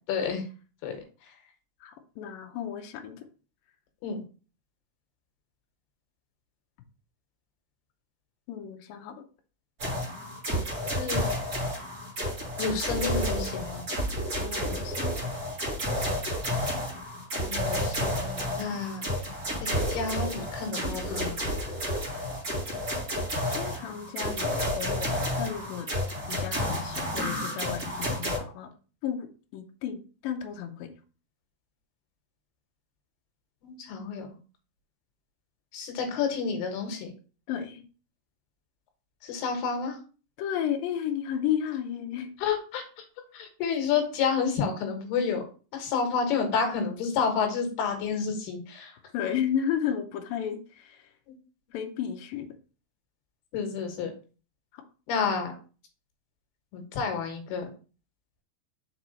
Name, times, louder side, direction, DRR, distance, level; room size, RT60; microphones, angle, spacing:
voice 1, 0.1-0.4 0.8-1.0 4.0-4.2 11.0-11.2 12.6-13.8 17.5-19.1 19.9-21.4 33.6-34.3 35.7-37.1 39.2-40.0 42.4-43.0 43.3-45.4 45.7-49.0 53.5-54.1 55.1-55.5 56.7-57.6, left 6 dB, 70° left, 4 dB, 3.0 m, -30 dB
voice 2, 1.8-3.2 8.5-9.2 14.4-15.2 23.6-25.9 26.3-28.7 29.0-30.9 37.5-37.8 40.4-42.3 49.1-51.1 51.7-52.5 54.7-54.8, left 9 dB, 90° left, 4 dB, 2.0 m, -33 dB
sound 1, 9.8-28.4, equal, 20° right, 3.3 m, -31 dB
5.9 x 4.6 x 4.0 m, 0.37 s
omnidirectional pair, 5.3 m